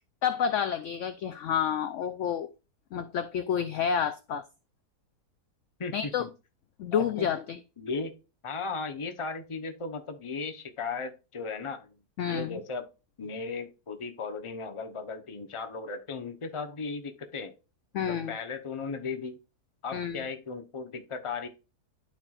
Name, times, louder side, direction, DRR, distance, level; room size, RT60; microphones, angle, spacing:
voice 1, 0.2-2.5 2.9-4.4 5.9-6.2 6.8-7.6 12.2-12.6 17.9-18.3 19.9-20.2, left 8 dB, 70° left, 0.7 m, -29 dB
voice 2, 5.8-6.3 6.9-7.3 7.8-8.2 8.4-12.0 12.3-12.8 13.2-17.5 18.1-19.4 19.8-21.5, left 4 dB, 25° left, 0.7 m, -36 dB
11.5 x 4.5 x 2.4 m
omnidirectional pair, 1.7 m